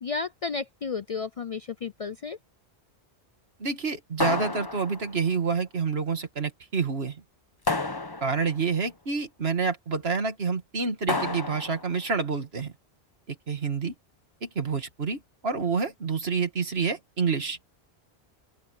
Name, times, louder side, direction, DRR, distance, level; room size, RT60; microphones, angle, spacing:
voice 1, 0.0-2.4, left 5 dB, 50° left, 0.4 m, -32 dB
voice 2, 3.6-7.2 8.2-12.7 13.3-13.9 14.4-17.6, right 5 dB, 70° right, 2.1 m, -28 dB
sound 1, 4.2-5.3 7.7-8.6 11.1-11.9, left 3 dB, 25° left, 1.0 m, -30 dB
open air
omnidirectional pair, 1.1 m